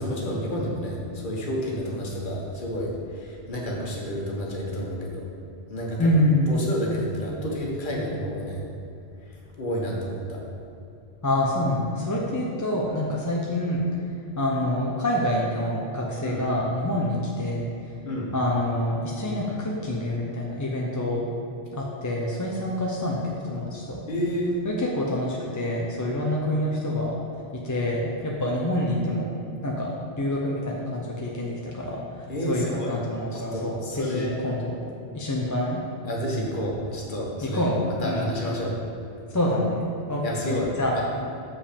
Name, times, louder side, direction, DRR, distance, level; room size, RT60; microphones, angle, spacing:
voice 1, 0.0-5.2 5.7-6.2 6.5-8.6 9.3-10.4 16.2-16.4 18.0-18.3 24.1-24.5 32.3-32.9 33.3-34.3 36.0-37.7 38.0-38.8 40.2-41.0, equal, 45° left, -3 dB, 1.4 m, -30 dB
voice 2, 6.0-6.6 11.2-13.9 14.4-17.9 18.3-21.3 21.7-24.0 24.6-27.2 27.5-29.3 29.6-34.8 35.1-35.8 37.4-38.3 39.3-41.0, left 1 dB, 20° left, -3 dB, 0.5 m, -27 dB
7.0 x 5.2 x 5.1 m, 2.7 s
omnidirectional pair, 1.2 m